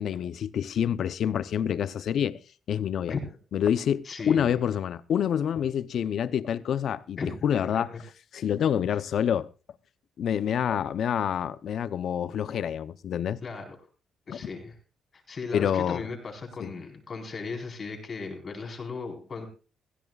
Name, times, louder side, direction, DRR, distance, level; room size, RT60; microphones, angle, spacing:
voice 1, 0.0-2.4 2.7-3.1 3.5-7.9 8.3-9.5 10.2-13.4 14.3-14.4 15.5-16.0 16.6-16.7, left 9 dB, 65° left, 0.7 m, -27 dB
voice 2, 4.0-4.5 7.2-7.8 13.4-13.7 14.3-14.7 15.1-19.5, left 4 dB, 40° left, 4.5 m, -36 dB
19.5 x 16.0 x 2.4 m
cardioid pair, 90°, 0 cm